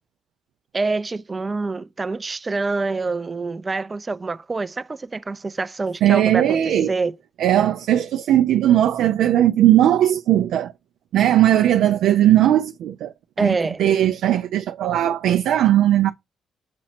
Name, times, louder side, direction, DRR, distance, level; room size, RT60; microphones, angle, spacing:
voice 1, 0.7-6.6 6.9-7.1 13.4-13.8, right 3 dB, 25° right, 0.5 m, -26 dB
voice 2, 6.0-6.9 7.4-10.7 11.1-13.1 13.4-16.1, right 12 dB, 80° right, 0.5 m, -18 dB
7.4 x 2.9 x 5.9 m
cardioid pair, 90°, 0 cm